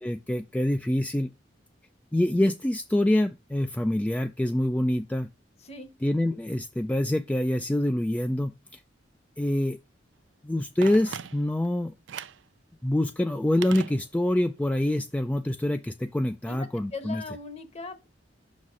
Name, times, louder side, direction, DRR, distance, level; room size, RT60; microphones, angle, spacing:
voice 1, 0.0-1.3 2.1-5.3 6.0-8.8 9.4-9.8 10.4-11.9 12.8-17.2, left 1 dB, 10° left, 0.3 m, -26 dB
Telephone, 10.8-11.7 12.1-12.5 13.6-14.5 14.8-14.9, right 7 dB, 90° right, 0.5 m, -39 dB
voice 2, 16.5-18.1, left 3 dB, 35° left, 1.1 m, -39 dB
5.9 x 4.1 x 6.2 m
head